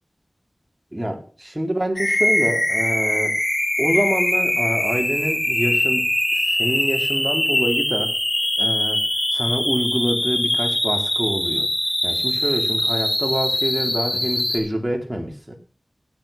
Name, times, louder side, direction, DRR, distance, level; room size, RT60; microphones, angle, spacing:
voice 1, 0.9-3.4 3.8-6.1 6.5-8.1 8.6-9.0 9.3-11.7 12.0-15.6, right 1 dB, 15° right, 3 dB, 4.0 m, -26 dB
sound 1, 2.0-14.6, left 1 dB, 40° left, 6.3 m, -22 dB
16.0 x 8.2 x 6.2 m, 0.41 s
wide cardioid pair, 55°, 0 cm